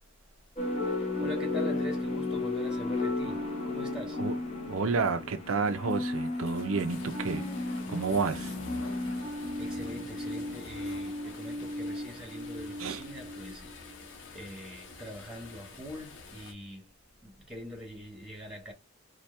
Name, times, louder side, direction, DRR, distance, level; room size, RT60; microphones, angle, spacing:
sound 1, 0.6-13.9, left 2 dB, 25° left, 1.1 m, -34 dB
voice 1, 1.0-4.3 9.6-16.9 17.2-18.7, left 1 dB, 5° right, 1.1 m, -43 dB
voice 2, 4.7-7.5 7.9-8.5 12.8-13.0, right 4 dB, 75° right, 0.6 m, -30 dB
sound 2, 5.6-7.1 8.0-9.1 9.4-11.1, left 3 dB, 85° left, 0.8 m, -49 dB
sound 3, 6.9-16.5, left 4 dB, 60° left, 1.2 m, -49 dB
4.3 x 2.4 x 3.2 m
head